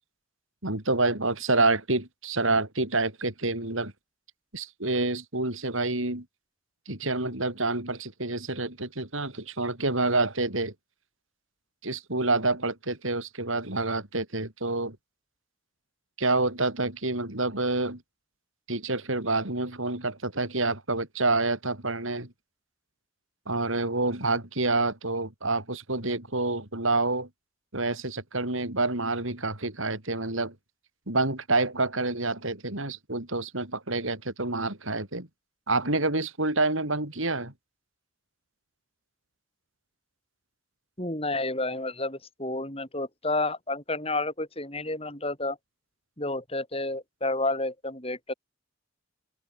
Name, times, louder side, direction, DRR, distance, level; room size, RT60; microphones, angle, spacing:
voice 1, 0.6-3.9 4.5-6.2 6.9-10.7 11.8-15.0 16.2-18.0 18.7-22.3 23.5-27.3 27.7-30.5 31.1-35.3 35.7-37.5, right 2 dB, 70° right, 5.0 m, -28 dB
voice 2, 41.0-45.6 46.2-48.3, left 2 dB, 25° left, 6.8 m, -30 dB
open air
head